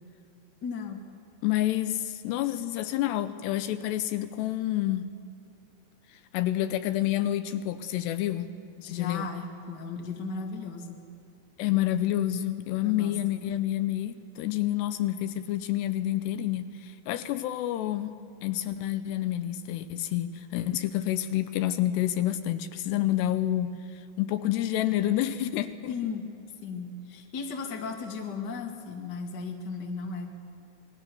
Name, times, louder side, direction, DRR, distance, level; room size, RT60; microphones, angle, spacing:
voice 1, 0.6-1.0 8.8-11.0 12.8-13.2 25.9-26.2 26.6-30.3, left 4 dB, 40° left, 3 dB, 1.7 m, -36 dB
voice 2, 1.4-5.1 6.3-8.5 8.9-9.3 11.6-18.1 18.4-26.0, left 13 dB, 80° left, 12 dB, 2.7 m, -28 dB
27.0 x 20.5 x 6.9 m, 2.7 s
omnidirectional pair, 5.0 m